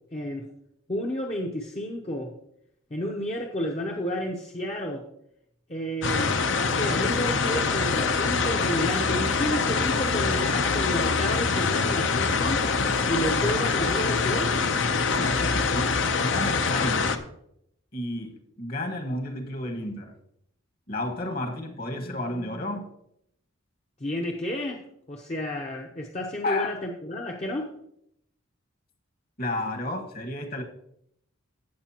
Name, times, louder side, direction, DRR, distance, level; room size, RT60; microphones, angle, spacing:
voice 1, 0.1-0.4 0.9-2.3 2.9-5.0 5.7-12.7 13.1-14.5 24.0-24.8 25.1-27.7, equal, 30° left, 0.8 m, -31 dB
sound 1, 6.0-17.2, left 4 dB, 65° left, 0.7 m, -24 dB
voice 2, 15.1-17.2 17.9-20.1 20.9-22.9 26.4-26.7 29.4-30.6, left 1 dB, 45° left, 1.5 m, -32 dB
17.0 x 6.6 x 2.9 m
head